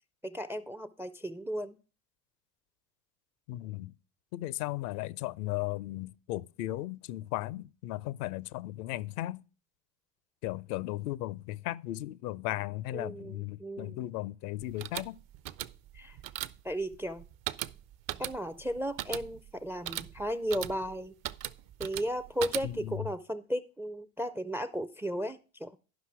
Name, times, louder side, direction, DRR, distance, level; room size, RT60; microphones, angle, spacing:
voice 1, 0.2-1.8 12.9-14.1 15.9-16.2 16.6-17.3 18.2-21.1 21.8-25.7, equal, 5° right, 0.4 m, -35 dB
voice 2, 3.5-3.9 4.3-9.4 10.4-15.2 22.6-23.1, left 16 dB, 70° left, 0.6 m, -36 dB
sound 1, 14.6-23.0, right 13 dB, 50° right, 0.6 m, -40 dB
11.5 x 5.6 x 4.6 m
hypercardioid pair, 75°, 46 cm